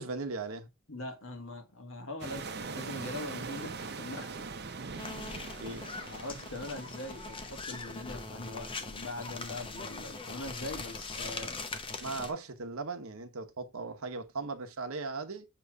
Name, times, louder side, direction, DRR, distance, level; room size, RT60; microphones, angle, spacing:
voice 1, 0.0-0.7 5.6-5.8 12.0-15.5, right 3 dB, 75° right, 1.0 m, -38 dB
voice 2, 0.9-4.5 6.0-11.6, left 2 dB, 65° left, 1.6 m, -42 dB
sound 1, 2.2-8.1, right 4 dB, 50° right, 0.7 m, -42 dB
sound 2, 5.0-12.3, left 3 dB, 25° left, 0.7 m, -41 dB
6.8 x 3.1 x 4.7 m
head